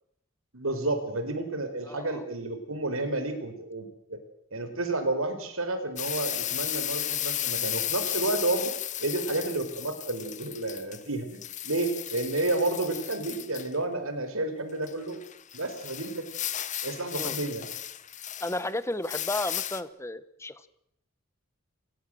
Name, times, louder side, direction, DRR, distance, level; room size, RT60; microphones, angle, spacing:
voice 1, 0.5-4.2 4.5-8.7 9.0-15.2 15.5-16.3 16.8-17.7, right 2 dB, 80° right, 8 dB, 4.8 m, -31 dB
voice 2, 1.9-2.2 17.2-17.4 18.4-20.7, left 2 dB, 15° left, 15 dB, 1.1 m, -33 dB
sound 1, 6.0-11.0 11.3-13.7 14.9-18.7 19.0-19.8, left 12 dB, 35° left, 1.1 m, -34 dB
29.5 x 17.5 x 7.8 m, 0.78 s
head